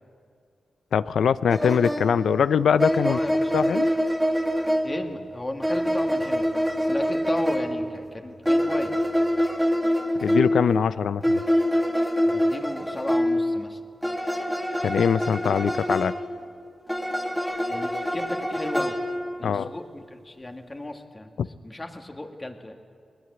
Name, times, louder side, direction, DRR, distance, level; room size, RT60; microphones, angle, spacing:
voice 1, 0.9-3.2 3.5-3.9 10.2-11.4 14.8-16.1 19.4-19.7 21.4-21.5, left 7 dB, 90° left, 15 dB, 0.5 m, -22 dB
sound 1, 1.5-5.1 5.6-7.9 8.4-10.7 11.2-13.7 14.0-16.3 16.9-19.6, equal, ahead, 2.0 m, -25 dB
voice 2, 3.0-3.8 4.8-6.5 6.8-9.1 12.3-13.8 17.7-19.0 19.4-21.3 21.6-22.8, left 1 dB, 25° left, 4 dB, 2.1 m, -34 dB
21.0 x 20.5 x 8.1 m, 2.3 s
wide cardioid pair, 95°, 0 cm